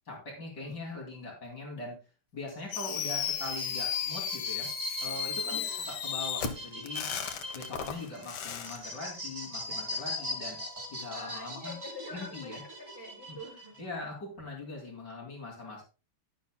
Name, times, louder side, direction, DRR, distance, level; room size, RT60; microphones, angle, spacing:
voice 1, 0.1-2.0 2.3-4.7 5.0-5.6 5.9-7.0 7.5-10.6 10.9-11.8 12.1-12.6 13.3-13.4 13.8-15.8, left 3 dB, 55° left, -1 dB, 3.2 m, -41 dB
sound 1, 2.5-13.8, equal, 30° right, 2.8 m, -41 dB
Fireworks, 2.7-8.8, left 8 dB, 70° left, 1.7 m, -34 dB
voice 2, 5.4-5.9 11.1-13.8, left 1 dB, 10° right, -4 dB, 4.4 m, -46 dB
Liquid, 8.2-11.1 11.5-11.6, left 1 dB, 10° left, 2.4 m, -56 dB
11.0 x 10.5 x 2.2 m, 0.32 s
omnidirectional pair, 2.2 m